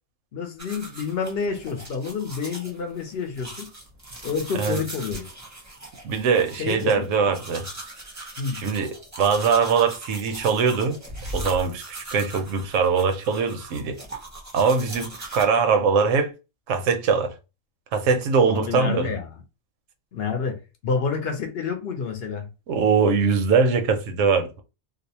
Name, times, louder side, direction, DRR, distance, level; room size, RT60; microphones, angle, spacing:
voice 1, 0.3-3.7 4.2-5.3 6.6-7.0 8.4-8.6 18.5-19.4 20.1-22.5, left 5 dB, 60° left, 0.8 m, -29 dB
sound 1, 0.6-15.4, right 1 dB, 20° right, 0.5 m, -40 dB
voice 2, 6.0-7.6 8.5-11.0 11.3-14.0 14.5-16.3 16.7-17.3 17.9-19.2 22.7-24.6, right 5 dB, 90° right, 1.0 m, -22 dB
2.6 x 2.0 x 2.7 m
omnidirectional pair, 1.3 m